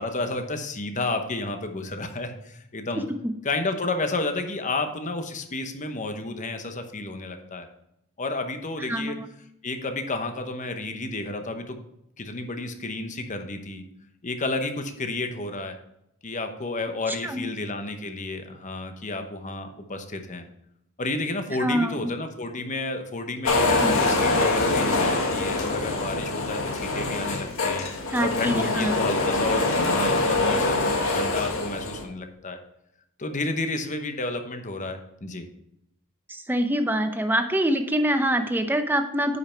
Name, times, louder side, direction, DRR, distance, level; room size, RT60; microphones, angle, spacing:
voice 1, 0.0-3.0 3.4-7.7 8.2-9.2 9.6-11.8 12.2-13.8 14.2-15.8 16.2-20.4 21.0-32.6 33.2-35.5, left 2 dB, 35° left, 6 dB, 1.0 m, -31 dB
voice 2, 2.9-3.3 8.8-9.3 17.1-17.5 21.6-22.1 23.8-24.0 28.1-29.0 36.3-39.4, right 1 dB, 10° right, 6 dB, 0.7 m, -25 dB
sound 1, 23.4-32.0, left 2 dB, 70° left, 1.7 m, -24 dB
9.6 x 5.6 x 4.5 m, 0.81 s
head